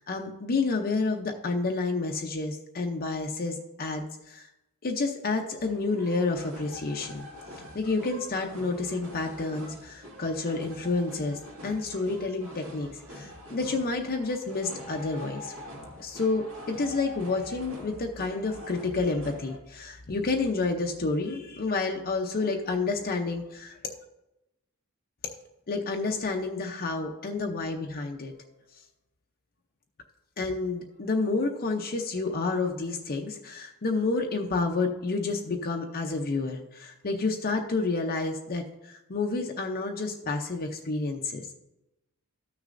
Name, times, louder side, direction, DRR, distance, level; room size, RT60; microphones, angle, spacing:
voice 1, 0.0-4.5 4.8-7.3 7.7-15.5 16.0-23.8 25.7-28.3 30.4-41.6, left 3 dB, 40° left, 2 dB, 0.6 m, -29 dB
sound 1, 5.6-19.6, left 1 dB, 65° right, 2.5 m, -45 dB
14.0 x 6.3 x 2.6 m, 0.95 s
head